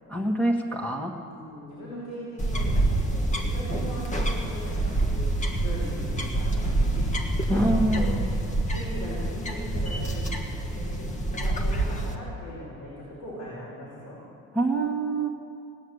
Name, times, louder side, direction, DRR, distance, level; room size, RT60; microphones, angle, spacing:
voice 1, 0.1-1.1 7.5-8.3 14.5-15.3, right 1 dB, 5° left, -1 dB, 1.5 m, -25 dB
voice 2, 1.2-5.4 5.6-7.2 7.5-8.1 8.7-10.3 10.6-14.2, equal, 85° left, -8 dB, 5.2 m, -39 dB
sound 1, 2.4-12.2, right 2 dB, 25° left, 1.5 m, -27 dB
18.0 x 9.4 x 8.0 m, 2.4 s
cardioid pair, 135°, 30 cm